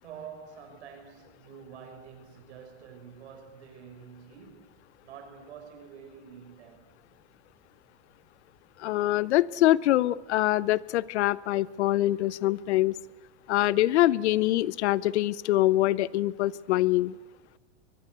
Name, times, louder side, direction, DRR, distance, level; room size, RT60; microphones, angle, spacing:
voice 1, 0.0-4.6 5.0-6.9, right 7 dB, 80° right, 6.7 m, -47 dB
voice 2, 8.8-12.9 13.5-17.2, left 15 dB, 85° left, 0.8 m, -24 dB
23.0 x 21.0 x 8.1 m
supercardioid pair, 160°, 33 cm